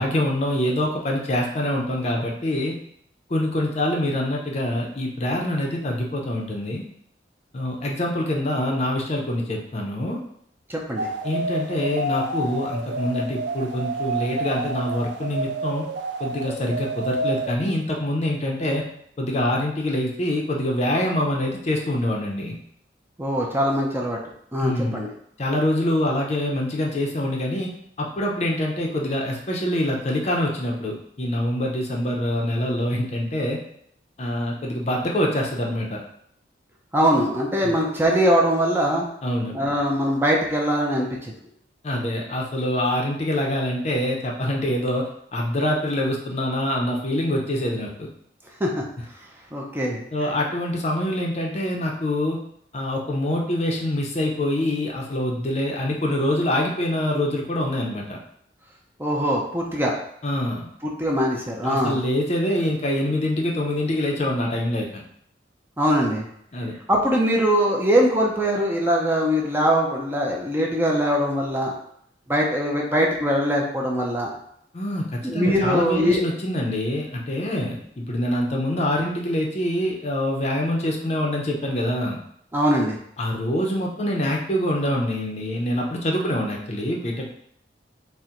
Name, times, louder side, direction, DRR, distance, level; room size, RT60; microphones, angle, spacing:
voice 1, 0.0-2.7 3.3-6.8 7.5-10.2 11.2-15.9 16.2-18.8 19.2-22.6 24.6-25.1 25.4-27.7 28.0-33.6 34.2-36.0 37.6-37.7 39.2-39.5 41.8-48.1 50.1-52.4 52.7-58.2 60.2-60.7 61.6-65.0 66.5-66.7 74.7-82.2 83.2-87.3, left 1 dB, 40° left, 0 dB, 0.6 m, -25 dB
voice 2, 10.7-11.1 23.2-24.2 24.5-25.1 36.9-39.1 39.5-41.3 48.6-48.7 49.5-50.0 59.0-59.9 60.8-62.0 65.8-66.3 66.9-71.7 72.3-74.3 75.2-76.2 82.5-83.0, equal, 10° right, -1 dB, 0.5 m, -22 dB
sound 1, 11.0-17.5, right 1 dB, 70° right, 0.4 m, -29 dB
4.4 x 2.1 x 3.7 m, 0.69 s
head